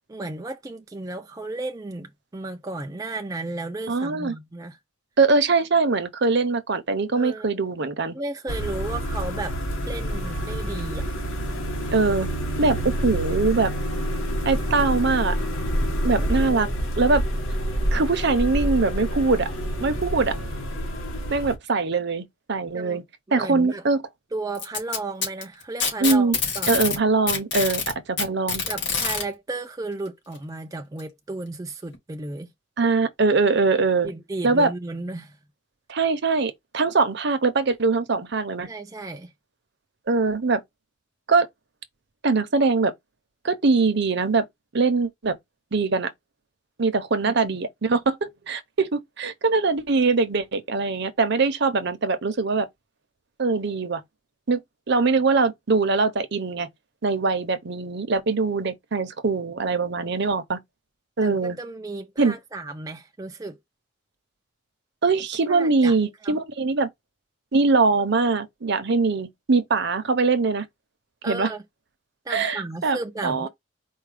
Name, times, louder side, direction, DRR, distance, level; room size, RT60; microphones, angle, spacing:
voice 1, 0.1-4.8 7.1-7.5 8.1-9.6 9.9-11.1 16.2-16.7 22.7-23.0 23.3-23.8 24.3-26.7 28.7-32.5 34.0-35.4 38.7-39.3 47.2-47.6 61.2-63.6 65.4-65.9 66.2-66.4 71.2-71.6 72.3-73.5, right 2 dB, 15° right, 0.4 m, -34 dB
voice 2, 3.9-4.3 5.2-8.2 11.9-12.3 12.6-13.7 14.4-15.4 16.0-16.7 17.0-17.2 17.9-19.5 19.8-20.4 21.3-23.0 23.3-24.0 26.0-26.4 26.7-28.6 32.8-34.1 34.4-34.7 35.9-38.7 40.1-40.6 41.3-41.5 42.2-42.9 43.4-44.4 44.7-45.4 45.7-46.1 46.8-52.7 53.4-54.0 54.5-54.6 54.9-56.7 57.0-60.6 61.2-61.6 62.2-62.3 65.0-66.9 67.5-70.7 71.3-71.5 72.3-73.0 73.2-73.5, right 4 dB, 55° right, 0.7 m, -22 dB
sound 1, 8.5-21.6, equal, 80° left, 1.5 m, -27 dB
Packing tape duct tape, 24.5-27.0 27.3-29.2 30.3-30.4 31.0-31.1 31.9-32.0, left 5 dB, 55° left, 2.5 m, -26 dB
4.6 x 2.3 x 4.8 m
head